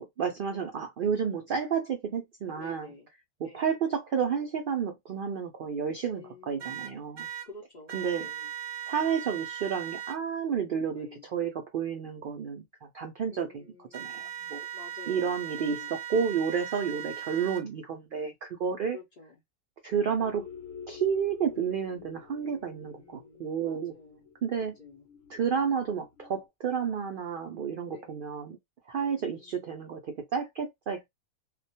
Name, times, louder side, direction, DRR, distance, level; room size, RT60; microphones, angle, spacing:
voice 1, 0.0-2.9 3.4-7.3 7.9-8.3 8.9-12.6 12.9-14.7 15.1-19.0 19.8-20.5 20.9-23.9 24.4-24.8 25.3-28.6 28.9-31.1, right 7 dB, 85° right, 0.4 m, -31 dB
voice 2, 2.5-3.1 3.4-3.7 6.1-6.8 7.4-8.5 10.9-11.3 13.3-14.3 14.7-15.9 16.9-17.2 18.9-19.4 19.9-20.1 22.4-24.3 24.5-25.0 25.4-25.7 27.9-28.2 29.0-29.6, left 3 dB, 45° left, 0.6 m, -51 dB
sound 1, 6.6-7.5 7.9-10.2 13.9-17.6, right 11 dB, 30° right, 1.0 m, -39 dB
sound 2, 20.2-26.3, left 7 dB, 75° left, 1.0 m, -47 dB
2.3 x 2.1 x 2.7 m
omnidirectional pair, 1.4 m